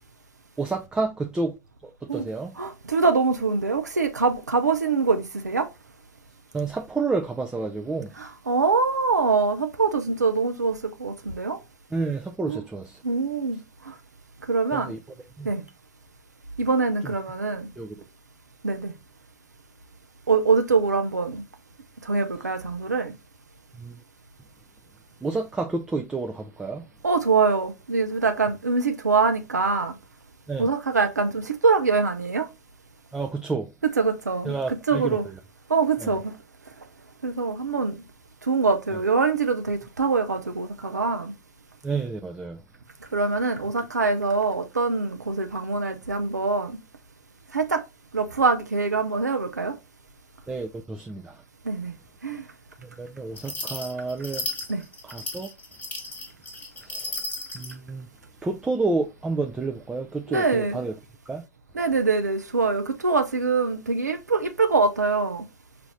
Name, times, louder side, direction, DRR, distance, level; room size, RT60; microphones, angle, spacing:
voice 1, 0.6-1.6 1.8-2.6 6.5-8.1 11.9-13.0 14.7-15.0 15.4-15.5 17.0-17.1 17.8-18.0 23.8-24.0 25.2-26.9 30.5-30.7 33.1-33.7 34.4-35.4 36.0-36.2 41.8-42.6 50.5-51.4 52.8-54.5 55.0-55.5 56.8-57.3 57.5-58.1 58.4-60.9 61.3-61.4, right 3 dB, 10° right, 0.4 m, -30 dB
voice 2, 2.6-5.7 8.2-11.6 12.5-12.6 13.0-13.6 13.8-13.9 14.5-14.9 15.4-15.6 16.6-17.7 18.6-18.9 20.3-21.4 22.0-23.1 27.0-29.9 30.6-32.5 34.0-34.6 34.9-35.2 35.7-36.3 37.2-38.0 38.4-41.3 43.1-46.8 47.5-47.8 48.1-49.7 51.6-51.9 52.2-52.5 54.7-54.8 60.3-60.8 61.7-65.4, right 4 dB, 85° right, 0.5 m, -24 dB
sound 1, 53.3-57.7, left 2 dB, 20° left, 1.2 m, -34 dB
4.9 x 2.4 x 3.1 m
figure-of-eight pair, 95°, 9 cm